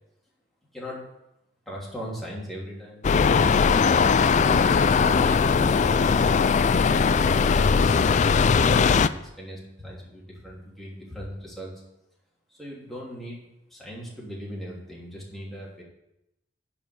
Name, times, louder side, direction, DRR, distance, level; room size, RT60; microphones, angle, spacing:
voice 1, 1.6-3.1 6.7-11.8 12.5-13.4 13.7-15.8, equal, ahead, -6 dB, 3.1 m, -39 dB
sound 1, 3.0-9.1, left 5 dB, 40° left, 0.3 m, -20 dB
10.5 x 5.1 x 7.8 m, 0.87 s
head